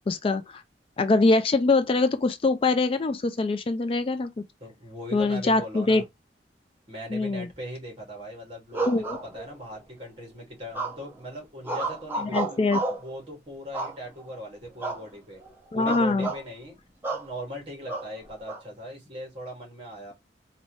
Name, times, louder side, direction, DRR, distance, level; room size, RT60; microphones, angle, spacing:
voice 1, 0.1-0.6 1.0-4.4 5.1-6.0 7.1-7.5 8.8-9.2 12.2-12.8 15.7-16.3, left 3 dB, 30° left, 0.3 m, -23 dB
voice 2, 4.6-6.1 6.9-12.6 13.0-15.4 15.7-16.8 17.1-20.1, equal, 30° right, 2.0 m, -39 dB
sound 1, 8.7-9.8 10.7-11.2 11.6-13.1 13.7-14.3 14.8-15.1 15.4-15.5 15.9-16.4 17.0-17.3 17.9-18.6, right 3 dB, 10° right, 0.7 m, -31 dB
4.1 x 2.7 x 3.0 m
head